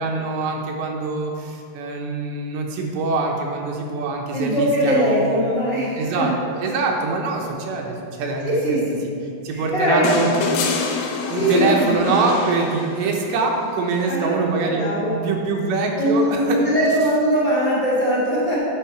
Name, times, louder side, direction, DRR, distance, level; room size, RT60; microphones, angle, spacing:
voice 1, 0.0-5.4 6.0-8.8 9.4-10.3 11.3-16.7, right 3 dB, 80° right, 1 dB, 3.2 m, -24 dB
voice 2, 4.3-6.3 8.4-8.9 9.5-10.2 11.3-12.0 14.1-14.3 14.6-15.2 16.0-18.6, equal, 30° left, -8 dB, 2.2 m, -21 dB
sound 1, 10.0-13.4 14.9-15.0, left 5 dB, 75° left, 2.4 m, -26 dB
10.5 x 7.3 x 4.6 m, 2.3 s
omnidirectional pair, 5.1 m